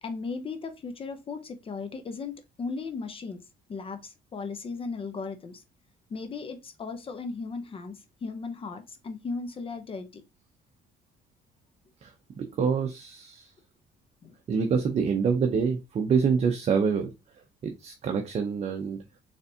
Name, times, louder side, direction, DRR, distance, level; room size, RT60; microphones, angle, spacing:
voice 1, 0.0-3.4 3.7-5.6 6.1-10.2 14.2-14.3, left 4 dB, 35° left, 0.7 m, -36 dB
voice 2, 12.4-13.5 14.5-17.1 17.6-19.0, right 6 dB, 40° right, 0.6 m, -26 dB
4.0 x 3.4 x 2.7 m
cardioid pair, 110°, 17 cm